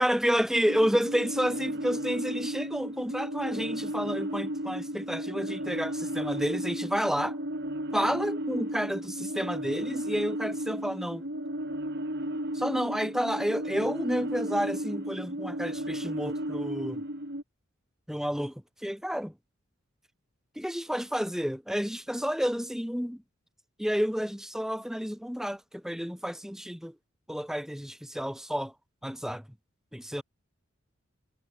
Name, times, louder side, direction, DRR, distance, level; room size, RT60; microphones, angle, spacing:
voice 1, 0.0-7.4 7.9-11.2 12.5-17.0 18.1-19.3 20.6-23.2 23.8-26.9 27.3-28.7 29.0-29.4 29.9-30.2, equal, ahead, 4.5 m, -30 dB
sound 1, 0.7-17.4, right 1 dB, 55° right, 6.9 m, -34 dB
head